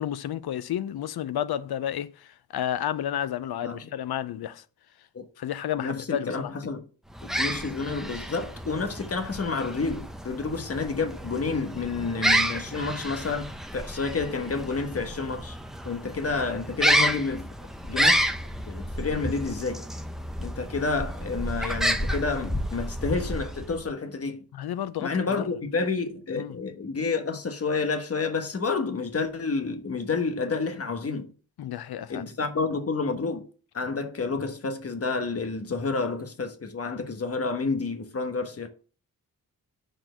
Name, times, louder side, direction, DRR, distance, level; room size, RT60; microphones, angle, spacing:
voice 1, 0.0-4.6 5.4-6.5 24.5-25.5 26.4-26.6 31.6-32.2, left 10 dB, 85° left, 0.6 m, -31 dB
voice 2, 5.8-6.8 7.4-15.6 15.8-17.5 17.8-18.3 18.7-19.8 20.4-24.4 25.0-31.3 32.1-33.5 33.7-38.7, left 4 dB, 40° left, 1.2 m, -29 dB
sound 1, 7.1-23.9, equal, ahead, 0.7 m, -30 dB
6.5 x 4.4 x 6.6 m
wide cardioid pair, 125°, 37 cm